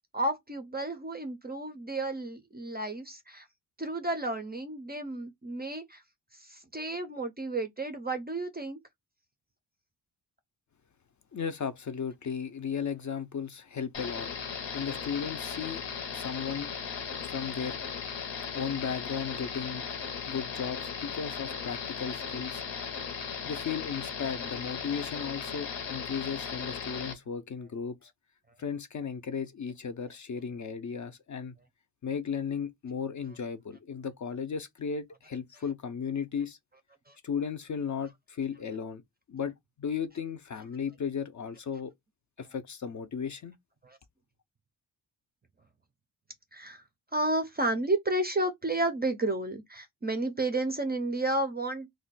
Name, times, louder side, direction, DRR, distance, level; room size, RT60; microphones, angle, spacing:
voice 1, 0.1-3.5 3.8-6.0 6.3-8.8 37.1-37.2 43.8-44.0 46.5-46.8 47.1-51.9, right 2 dB, 25° right, 0.3 m, -32 dB
voice 2, 11.3-14.3 14.7-15.8 16.1-16.7 17.2-17.8 18.5-19.9 20.3-22.6 23.4-28.1 28.6-31.6 32.0-36.6 37.2-39.0 39.3-41.9 42.4-43.5, left 6 dB, 45° left, 0.4 m, -35 dB
sound 1, 13.9-27.1, left 6 dB, 75° left, 0.8 m, -37 dB
2.4 x 2.2 x 3.9 m
wide cardioid pair, 120°, 43 cm